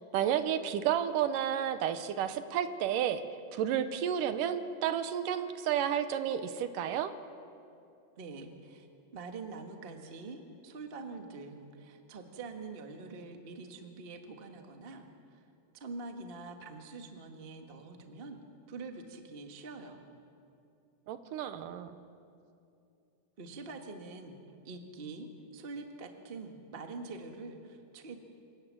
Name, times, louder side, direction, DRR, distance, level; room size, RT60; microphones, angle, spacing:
voice 1, 0.1-3.2 3.5-7.1 21.1-21.9, right 9 dB, 80° right, 11 dB, 2.4 m, -31 dB
voice 2, 8.2-8.9 9.1-15.5 15.7-18.4 18.7-20.0 23.4-24.4 24.6-28.2, right 3 dB, 45° right, 4 dB, 0.7 m, -45 dB
26.5 x 18.5 x 7.6 m, 2.6 s
omnidirectional pair, 4.0 m